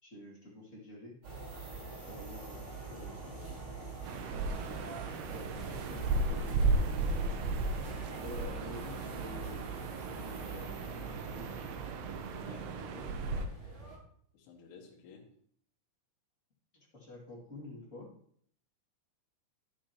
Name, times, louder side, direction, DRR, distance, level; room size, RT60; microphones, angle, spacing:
voice 1, 0.0-1.1 2.1-2.6 2.9-3.1 4.2-4.9 5.3-6.0 6.3-7.3 7.9-11.5 12.2-13.1 16.9-18.1, left 1 dB, 30° left, -6 dB, 1.4 m, -49 dB
sound 1, 1.2-14.0, right 3 dB, 35° right, 5.7 m, -44 dB
sound 2, 4.1-13.5, right 3 dB, 85° right, 2.2 m, -35 dB
voice 2, 12.3-12.7 14.3-15.3, left 5 dB, 80° left, -1 dB, 4.1 m, -54 dB
11.5 x 8.6 x 3.0 m, 0.62 s
omnidirectional pair, 5.6 m